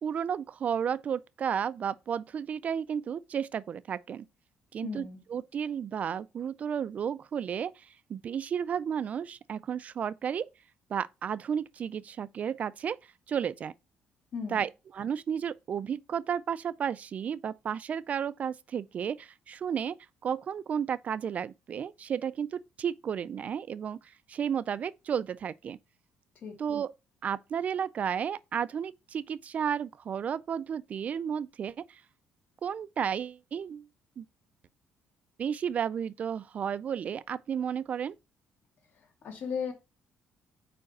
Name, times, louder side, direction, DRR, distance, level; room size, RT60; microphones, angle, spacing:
voice 1, 0.0-4.3 4.7-10.5 10.9-13.0 13.3-13.7 14.5-20.0 20.2-25.8 26.6-26.9 27.2-32.0 32.6-33.9 34.2-34.3 35.4-38.1, right 8 dB, 40° right, 0.3 m, -33 dB
voice 2, 4.8-5.2 14.3-14.6 26.4-26.6 38.9-39.7, left 6 dB, 50° left, 2.2 m, -36 dB
5.0 x 4.8 x 5.9 m
cardioid pair, 145°, 4 cm